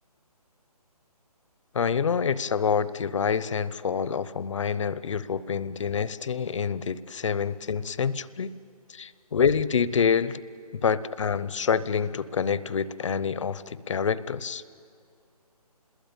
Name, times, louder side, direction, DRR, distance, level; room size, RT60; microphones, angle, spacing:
voice 1, 1.7-8.5 8.9-10.4 10.7-14.6, left 6 dB, 50° left, 17 dB, 0.8 m, -27 dB
28.0 x 21.0 x 8.9 m, 2.4 s
hypercardioid pair, 160°, 20 cm